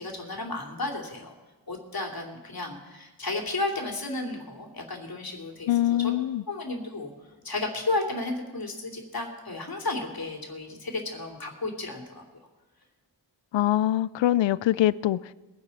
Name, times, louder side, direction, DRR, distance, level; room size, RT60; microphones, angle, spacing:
voice 1, 0.0-1.3 1.7-5.7 6.0-6.1 6.5-7.1 7.4-12.2, left 2 dB, 50° left, 3.0 m, -33 dB
voice 2, 5.7-6.4 13.5-15.3, left 13 dB, 80° left, 0.5 m, -24 dB
22.0 x 10.0 x 4.2 m
cardioid pair, 55°, 45 cm